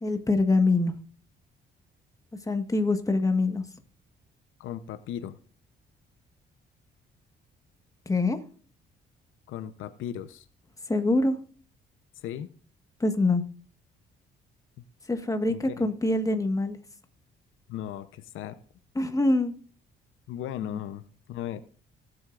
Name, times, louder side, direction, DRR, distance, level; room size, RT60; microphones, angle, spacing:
voice 1, 0.0-0.9 2.5-3.6 8.0-8.4 10.9-11.3 13.0-13.4 15.1-16.8 18.9-19.5 20.6-20.8, left 2 dB, 15° left, 7 dB, 1.5 m, -24 dB
voice 2, 4.6-5.4 9.5-10.5 12.2-12.5 15.5-15.9 17.7-18.6 20.3-21.0 21.3-21.6, left 11 dB, 85° left, 13 dB, 0.8 m, -36 dB
18.5 x 7.9 x 2.5 m, 0.43 s
cardioid pair, 90°, 20 cm